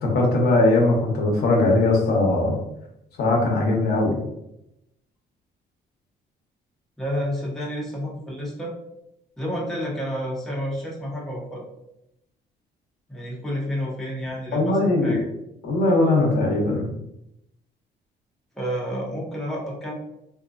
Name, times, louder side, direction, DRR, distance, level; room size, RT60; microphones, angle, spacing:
voice 1, 0.0-2.6 3.2-4.2 14.5-15.2 15.6-16.9, left 2 dB, 70° left, -1 dB, 1.0 m, -20 dB
voice 2, 7.0-8.7 9.4-11.7 13.1-15.3 18.5-19.9, equal, ahead, -4 dB, 0.9 m, -30 dB
3.6 x 2.7 x 2.5 m, 0.84 s
cardioid pair, 115°, 17 cm